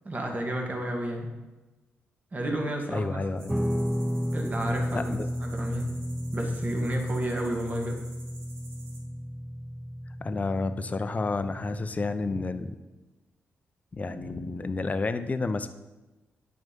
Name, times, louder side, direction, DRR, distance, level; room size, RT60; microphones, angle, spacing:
voice 1, 0.1-1.3 2.3-3.2 4.3-5.1 5.4-5.9 6.3-8.0 14.1-14.3, right 1 dB, 35° right, 2 dB, 1.9 m, -31 dB
voice 2, 2.9-3.5 4.9-5.3 10.2-12.7 13.9-15.7, left 3 dB, 35° left, 10 dB, 0.7 m, -30 dB
sound 1, 3.4-9.0, right 2 dB, 90° right, 2.1 m, -52 dB
Guitar, 3.5-12.8, equal, 5° right, 0.3 m, -33 dB
9.1 x 6.2 x 5.3 m, 1.1 s
cardioid pair, 70°, 5 cm